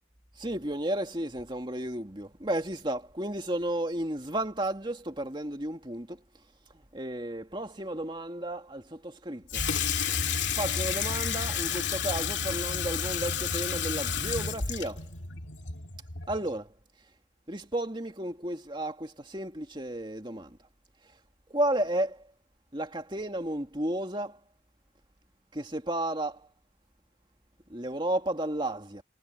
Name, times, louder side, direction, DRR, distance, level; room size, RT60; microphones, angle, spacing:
voice 1, 0.4-6.2 6.9-9.6 10.5-15.0 16.3-16.7 17.5-20.6 21.5-22.2 22.7-24.4 25.5-26.5 27.7-29.0, right 1 dB, 25° right, 2.4 m, -33 dB
Water tap faucet / Sink (filling or washing), 9.5-16.5, left 6 dB, 75° left, 2.3 m, -31 dB
head